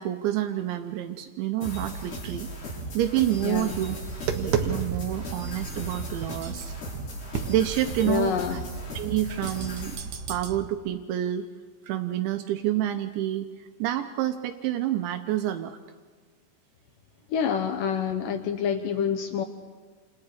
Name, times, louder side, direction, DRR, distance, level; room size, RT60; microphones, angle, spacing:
voice 1, 0.0-2.5 2.9-6.7 7.5-8.6 8.9-10.0 10.3-11.4 11.8-15.8, right 12 dB, 80° right, 6 dB, 3.2 m, -28 dB
sound 1, 1.6-10.0, right 1 dB, 55° left, 8.9 m, -37 dB
voice 2, 3.4-3.7 8.0-8.6 17.3-19.4, left 7 dB, 80° left, 6 dB, 1.9 m, -27 dB
Tap, 3.9-10.6, right 6 dB, 60° right, 2.3 m, -34 dB
29.0 x 28.5 x 5.0 m, 1.5 s
omnidirectional pair, 5.3 m